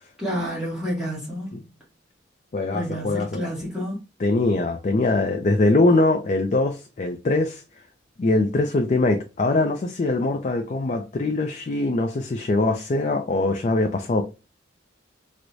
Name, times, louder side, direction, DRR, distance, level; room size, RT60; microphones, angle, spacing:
voice 1, 0.2-1.5 2.7-4.0, equal, 5° right, 1.1 m, -29 dB
voice 2, 2.5-3.4 4.2-7.6 8.2-14.2, left 2 dB, 40° left, 0.4 m, -22 dB
4.6 x 2.1 x 2.5 m
head